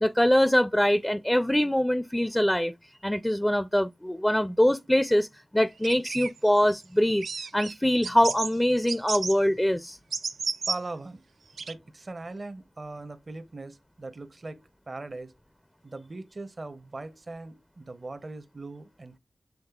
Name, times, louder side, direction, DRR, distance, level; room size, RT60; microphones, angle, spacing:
voice 1, 0.0-2.7 3.0-5.3 5.5-7.3 7.5-10.0, equal, 10° left, 0.4 m, -23 dB
sound 1, 5.8-6.7 7.2-7.7 8.0-8.5 8.9-9.4 10.1-10.8 11.6-11.7, right 5 dB, 90° right, 0.3 m, -32 dB
voice 2, 10.7-11.2 11.7-15.3 15.8-19.2, right 2 dB, 50° right, 0.6 m, -40 dB
7.2 x 3.1 x 2.3 m
cardioid pair, 45°, 0 cm